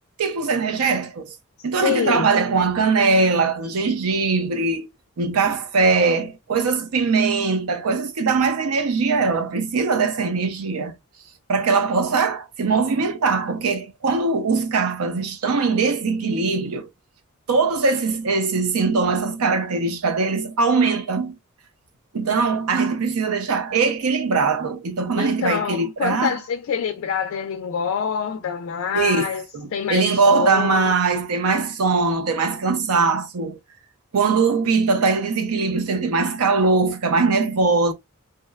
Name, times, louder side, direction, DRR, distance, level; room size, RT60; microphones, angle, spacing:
voice 1, 0.2-1.3 1.6-4.9 5.2-11.0 11.5-16.9 17.5-21.3 22.1-26.4 28.9-29.3 29.5-33.6 34.1-37.9, right 4 dB, 90° right, 0.5 m, -21 dB
voice 2, 1.8-2.3 25.1-29.4 29.7-30.9, left 7 dB, 65° left, 0.3 m, -26 dB
2.8 x 2.0 x 2.2 m
head